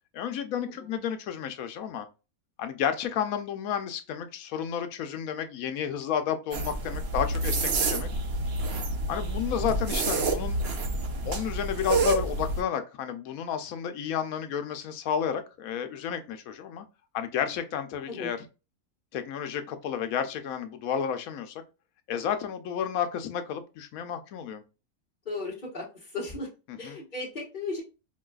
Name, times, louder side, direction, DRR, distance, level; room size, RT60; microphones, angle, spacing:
voice 1, 0.1-2.1 2.6-8.1 9.1-10.6 11.2-16.9 17.1-18.4 19.1-21.6 22.1-24.6 26.7-27.0, left 8 dB, 75° left, 1.0 m, -31 dB
sound 1, 6.5-12.6, right 3 dB, 55° right, 0.8 m, -28 dB
voice 2, 25.2-26.5 26.8-27.8, left 3 dB, 40° left, 1.1 m, -35 dB
4.6 x 2.2 x 2.3 m
omnidirectional pair, 1.5 m